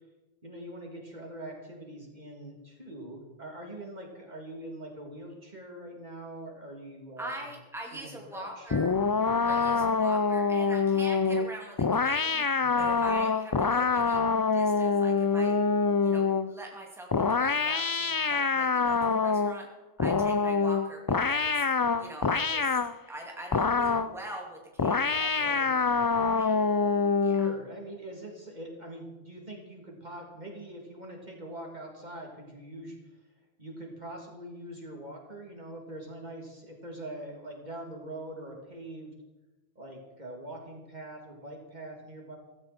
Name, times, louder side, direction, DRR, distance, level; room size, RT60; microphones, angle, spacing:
voice 1, 0.4-7.5 7.9-8.7 9.5-9.8 12.6-12.9 25.3-25.7 27.4-33.2 33.6-39.1 39.7-42.4, right 1 dB, 40° right, 0 dB, 3.3 m, -43 dB
voice 2, 7.2-9.0 9.4-14.2 14.5-15.5 16.0-19.7 20.0-21.5 22.0-22.8 23.1-25.9 26.3-26.6 27.2-27.5, right 1 dB, ahead, -1 dB, 2.5 m, -43 dB
sound 1, 8.7-16.5 17.1-19.6 20.0-23.0 23.5-24.2 24.8-27.6, left 5 dB, 35° left, 0.3 m, -26 dB
16.0 x 16.0 x 4.4 m, 1.1 s
omnidirectional pair, 1.1 m